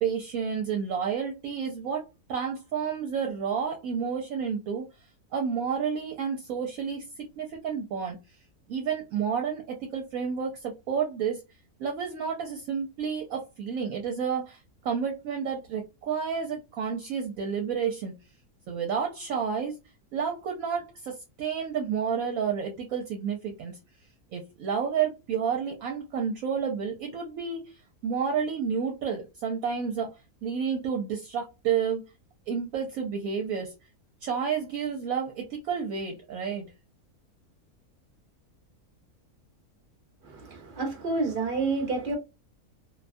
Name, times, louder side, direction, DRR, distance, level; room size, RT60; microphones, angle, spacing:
voice 1, 0.0-4.9 5.3-7.1 7.4-8.2 8.7-11.4 11.8-18.1 18.7-19.8 20.1-23.8 24.3-32.0 32.5-33.7 34.2-36.7, right 6 dB, 70° right, 1.0 m, -30 dB
voice 2, 40.2-42.2, right 3 dB, 45° right, 0.7 m, -29 dB
2.6 x 2.2 x 2.5 m
omnidirectional pair, 1.6 m